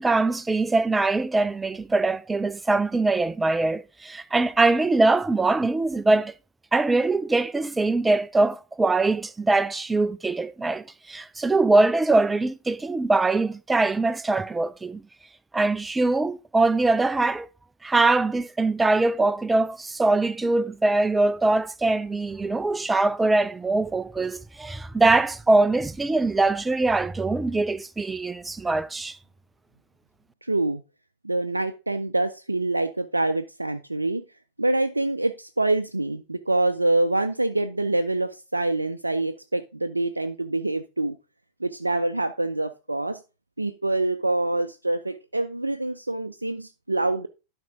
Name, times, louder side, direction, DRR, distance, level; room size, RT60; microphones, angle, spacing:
voice 1, 0.0-6.3 6.7-15.0 15.5-17.5 17.8-29.2, right 2 dB, 10° right, 0.4 m, -22 dB
voice 2, 30.4-30.8 31.2-34.2 34.6-41.2 41.6-43.2 43.6-47.3, right 2 dB, 85° right, 0.4 m, -25 dB
11.5 x 5.4 x 3.7 m
figure-of-eight pair, 90°, 0 cm